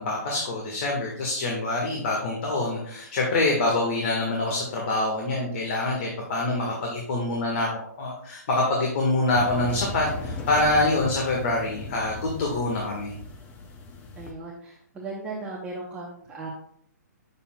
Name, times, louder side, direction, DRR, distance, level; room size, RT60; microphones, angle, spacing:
voice 1, 0.0-13.2, left 2 dB, 45° left, -1 dB, 1.6 m, -25 dB
sound 1, 9.3-14.3, left 3 dB, 15° left, 0.7 m, -37 dB
voice 2, 14.1-16.5, right 3 dB, 10° right, -4 dB, 0.9 m, -37 dB
9.6 x 6.8 x 2.3 m, 0.67 s
hypercardioid pair, 160°, 9 cm